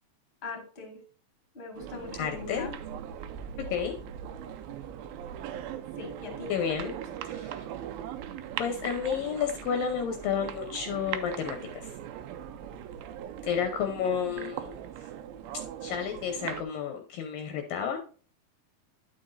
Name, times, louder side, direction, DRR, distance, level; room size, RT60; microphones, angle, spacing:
voice 1, 0.4-1.0 1.5-2.7 6.0-7.1, left 3 dB, 20° left, 2 dB, 1.9 m, -41 dB
sound 1, 1.8-16.6, right 9 dB, 80° right, 2.4 m, -40 dB
voice 2, 2.2-2.6 3.7-3.9 6.5-6.9 7.4-7.5 8.6-11.8 13.4-14.8 15.8-18.0, left 7 dB, 75° left, 5 dB, 2.3 m, -31 dB
11.0 x 5.8 x 2.6 m, 0.40 s
omnidirectional pair, 4.5 m